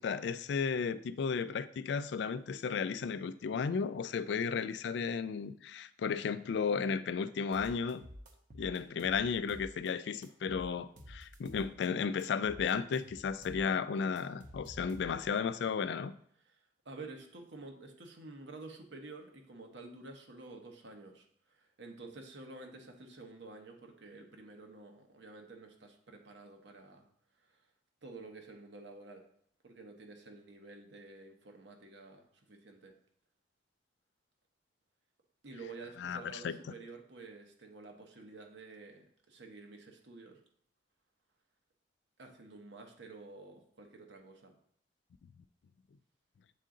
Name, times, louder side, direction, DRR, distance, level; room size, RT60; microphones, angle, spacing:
voice 1, 0.0-8.0 8.5-16.1 36.0-36.5, left 6 dB, 75° left, 14 dB, 0.3 m, -34 dB
sound 1, 7.5-9.9 10.2-11.9 12.2-15.4, equal, 45° right, 0.7 m, -51 dB
voice 2, 16.8-27.1 27.5-27.6 28.0-29.2 29.6-32.9 35.4-40.4 42.2-44.6, right 3 dB, 80° right, 3 dB, 1.0 m, -50 dB
7.5 x 3.8 x 3.7 m, 0.64 s
head